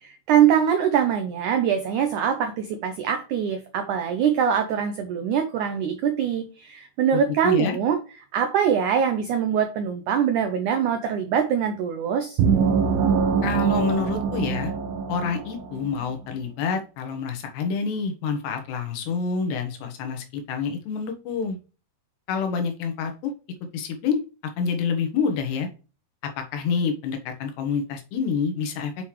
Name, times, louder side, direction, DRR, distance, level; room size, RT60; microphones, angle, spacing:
voice 1, 0.0-8.0 8.3-12.4, right 8 dB, 85° right, 7 dB, 1.7 m, -23 dB
voice 2, 7.1-7.8 13.4-14.7 15.1-21.6 22.3-23.3 23.7-24.2 24.6-25.7 26.4-28.9, left 5 dB, 85° left, 5 dB, 3.4 m, -27 dB
sound 1, 12.4-15.9, right 6 dB, 70° right, 2.6 m, -23 dB
7.8 x 5.8 x 3.2 m, 0.34 s
omnidirectional pair, 4.7 m